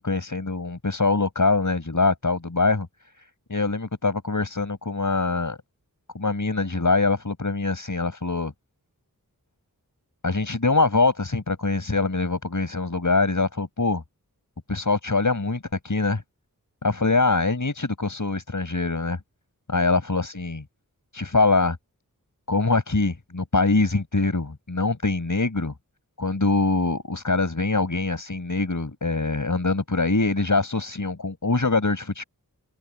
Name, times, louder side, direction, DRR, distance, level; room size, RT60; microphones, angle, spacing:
voice 1, 0.0-2.9 3.5-5.6 6.1-8.5 10.2-14.0 14.7-16.2 16.8-19.2 19.7-20.6 21.1-21.8 22.5-25.7 26.2-32.2, left 3 dB, 55° left, 5.4 m, -23 dB
wide cardioid pair, 65°, 36 cm